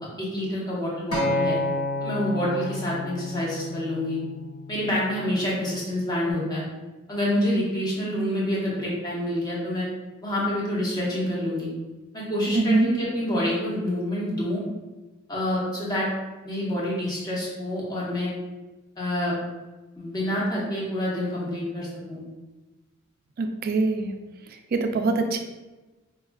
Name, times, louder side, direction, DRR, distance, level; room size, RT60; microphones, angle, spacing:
voice 1, 0.2-1.6 2.0-4.2 4.7-6.6 7.1-9.8 10.2-11.7 12.1-14.6 15.3-16.1 16.4-18.3 19.0-19.3 20.0-22.2, left 1 dB, 20° left, -6 dB, 0.9 m, -27 dB
Acoustic guitar, 1.1-5.4 6.2-6.3, left 2 dB, 90° left, 0.9 m, -30 dB
voice 2, 12.5-12.9 23.4-24.1 24.7-25.4, right 3 dB, 45° right, 5 dB, 0.3 m, -23 dB
4.7 x 2.4 x 2.3 m, 1.2 s
head